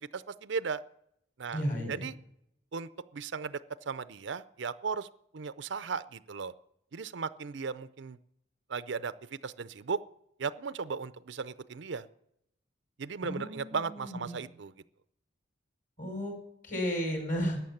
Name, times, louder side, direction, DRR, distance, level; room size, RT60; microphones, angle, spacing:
voice 1, 0.1-0.8 1.4-2.2 2.7-3.6 3.9-5.1 5.3-6.5 6.9-8.2 8.7-10.0 10.4-12.1 13.0-14.7, right 5 dB, 60° right, 15 dB, 0.5 m, -36 dB
voice 2, 1.5-2.1 13.2-14.4 16.0-16.3 16.6-17.6, equal, 40° left, 2 dB, 5.6 m, -33 dB
14.5 x 9.7 x 7.1 m, 0.75 s
head